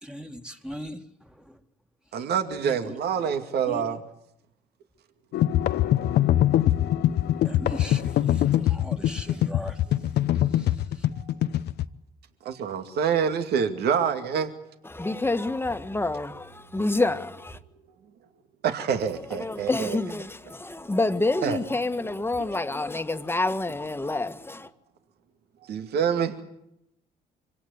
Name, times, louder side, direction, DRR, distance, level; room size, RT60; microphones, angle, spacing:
voice 1, 0.0-1.0 1.4-1.6 2.6-2.9 3.7-3.8 7.4-9.8 10.3-10.7, equal, 5° right, 2.0 m, -39 dB
voice 2, 2.1-4.0 12.4-14.5 18.6-20.0 21.4-21.6 25.7-26.3, right 7 dB, 70° right, 2.4 m, -26 dB
sound 1, 5.3-11.9, left 12 dB, 70° left, 0.9 m, -23 dB
voice 3, 14.9-17.6 19.4-24.7, left 2 dB, 15° left, 1.6 m, -27 dB
25.0 x 17.0 x 9.5 m
supercardioid pair, 75°, 18 cm